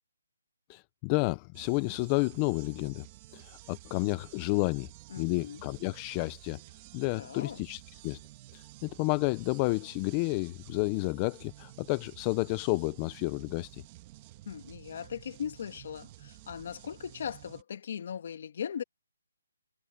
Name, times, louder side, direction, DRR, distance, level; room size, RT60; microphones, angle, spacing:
voice 1, 0.7-3.1 3.3-4.9 5.2-6.6 6.9-8.2 8.5-13.8, left 26 dB, 15° left, 0.5 m, -31 dB
sound 1, 1.5-17.6, right 17 dB, 20° right, 1.6 m, -52 dB
voice 2, 5.1-5.6 7.2-7.6 14.5-18.8, left 8 dB, 40° left, 1.9 m, -39 dB
hypercardioid pair, 170°, 0 cm